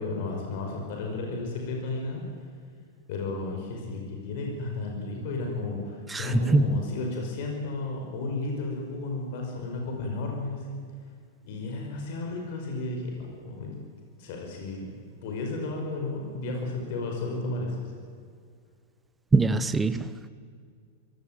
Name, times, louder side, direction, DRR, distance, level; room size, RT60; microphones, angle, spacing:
voice 1, 0.0-2.2 3.1-10.8 11.4-13.7 14.2-14.8 15.2-17.8, left 2 dB, 55° left, 1 dB, 5.6 m, -33 dB
voice 2, 6.1-6.8 19.3-20.1, right 3 dB, 10° right, 13 dB, 0.9 m, -23 dB
23.5 x 17.5 x 9.0 m, 2.1 s
supercardioid pair, 160°, 0 cm